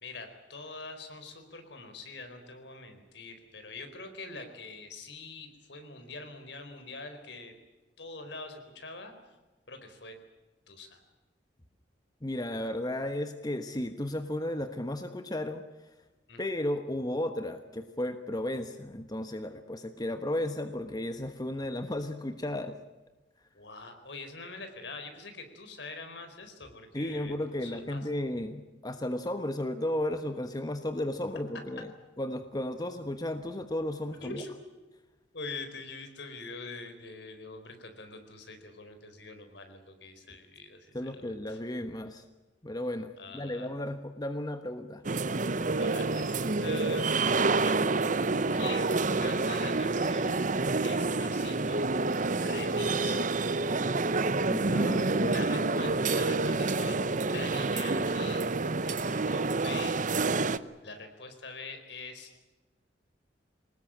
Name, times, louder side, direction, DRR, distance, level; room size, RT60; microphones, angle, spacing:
voice 1, 0.0-7.5 8.0-9.3 9.7-10.1 10.7-11.0 16.3-16.4 23.5-28.0 34.2-34.6 35.3-41.6 43.2-43.7 45.7-47.8 48.5-48.9 49.2-50.4 50.7-51.9 52.4-53.3 55.3-58.4 58.8-60.0 60.8-62.4, left 3 dB, 70° left, 7 dB, 4.3 m, -44 dB
voice 2, 12.2-15.6 16.4-22.8 26.9-31.9 32.2-34.4 40.9-42.2 42.6-45.0 54.4-55.4 55.8-55.9, left 1 dB, 20° left, 8 dB, 1.2 m, -34 dB
sound 1, 45.0-60.6, right 3 dB, 45° right, 0.8 m, -28 dB
24.0 x 19.5 x 8.9 m, 1.2 s
head